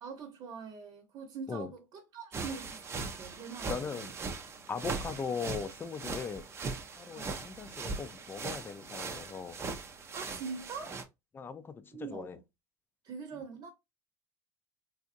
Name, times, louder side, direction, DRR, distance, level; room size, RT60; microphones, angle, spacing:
voice 1, 0.0-4.1 7.1-7.4 10.1-11.0 11.9-12.4 13.0-13.7, right 5 dB, 50° right, 0.9 m, -43 dB
sound 1, 2.3-11.0, right 4 dB, 30° right, 0.7 m, -40 dB
voice 2, 3.7-4.1 4.7-6.4 7.0-9.6 11.3-12.4, left 5 dB, 25° left, 0.5 m, -39 dB
3.6 x 2.8 x 2.6 m
supercardioid pair, 110°, 9 cm